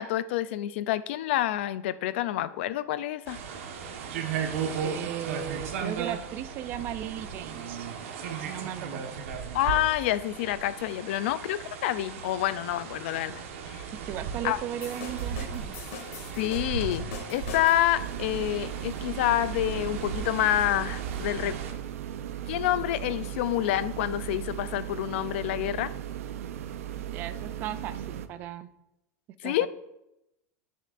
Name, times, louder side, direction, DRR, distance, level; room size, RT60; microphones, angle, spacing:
voice 1, 0.0-3.4 9.5-13.4 13.7-13.9 14.4-14.6 16.4-21.6 22.5-25.9 29.4-29.7, left 13 dB, 55° left, 15 dB, 0.4 m, -28 dB
sound 1, 3.3-21.7, right 7 dB, 70° right, 1.3 m, -36 dB
voice 2, 4.8-7.9 8.4-9.2 14.0-15.8 27.1-28.7 29.4-29.7, right 11 dB, 25° right, 14 dB, 0.3 m, -36 dB
sound 2, 14.8-18.0, left 5 dB, 85° left, 1.7 m, -41 dB
sound 3, 17.9-28.3, right 11 dB, 85° right, 0.6 m, -37 dB
16.5 x 6.5 x 2.5 m, 0.90 s
supercardioid pair, 175°, 7 cm